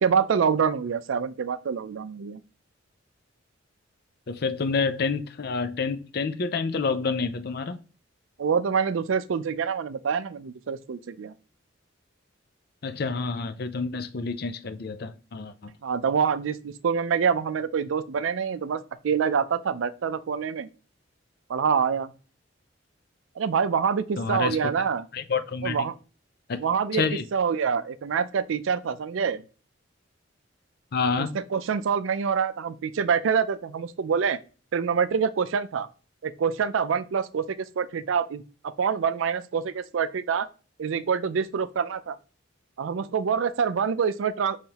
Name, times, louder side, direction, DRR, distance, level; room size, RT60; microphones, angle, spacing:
voice 1, 0.0-2.4 8.4-11.3 15.8-20.7 21.5-22.1 23.4-25.0 25.6-25.9 26.6-27.0 27.3-29.4 31.2-34.4 34.7-35.9 36.2-40.5 40.8-42.2 42.8-44.6, right 6 dB, 85° right, 0.4 m, -26 dB
voice 2, 4.3-7.8 12.8-15.7 24.2-24.7 25.1-25.9 26.5-26.6 26.9-27.2 30.9-31.3, left 4 dB, 55° left, 0.5 m, -28 dB
5.5 x 3.2 x 2.9 m
head